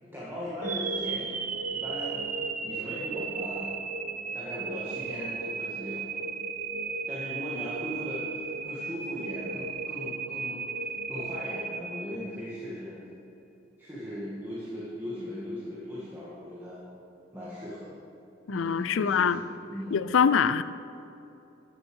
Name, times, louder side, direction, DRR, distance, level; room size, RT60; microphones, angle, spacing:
voice 1, 0.0-2.2 2.6-3.7 4.3-6.1 7.1-10.6 11.1-12.9 13.8-16.8 17.3-18.0 18.5-19.3 19.7-20.1, equal, 10° right, -9 dB, 2.1 m, -38 dB
sound 1, 0.6-12.7, right 5 dB, 45° right, 0.8 m, -35 dB
voice 2, 18.5-19.4 19.9-20.6, left 6 dB, 90° left, 14 dB, 0.4 m, -24 dB
14.0 x 7.1 x 6.4 m, 2.9 s
head